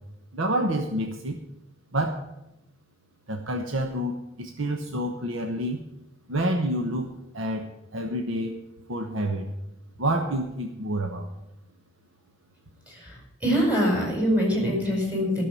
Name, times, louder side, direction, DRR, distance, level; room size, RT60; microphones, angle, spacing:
voice 1, 0.3-1.4 1.9-2.2 3.3-5.8 6.3-8.6 8.9-9.5 10.0-11.3, right 1 dB, 75° right, 3 dB, 1.2 m, -28 dB
voice 2, 12.9-15.4, equal, 10° right, -1 dB, 5.4 m, -24 dB
12.0 x 6.9 x 9.8 m, 0.86 s
head